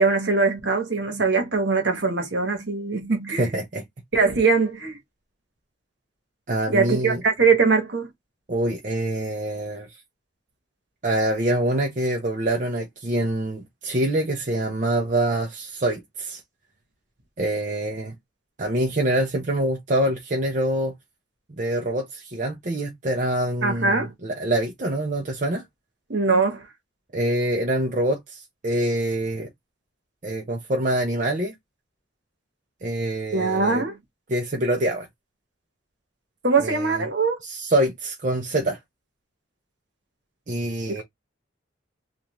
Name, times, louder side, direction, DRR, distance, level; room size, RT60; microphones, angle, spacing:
voice 1, 0.0-3.5 4.1-5.0 6.7-8.1 23.6-24.1 26.1-26.6 33.3-34.0 36.4-37.4, right 4 dB, 60° right, 1.2 m, -22 dB
voice 2, 3.4-3.8 6.5-7.2 8.5-9.9 11.0-16.4 17.4-18.2 18.6-20.9 21.5-25.6 27.1-29.5 30.2-31.5 32.8-33.8 34.3-35.1 36.6-37.0 37.4-38.8 40.5-41.0, right 1 dB, 40° right, 0.6 m, -25 dB
3.3 x 2.5 x 2.8 m
head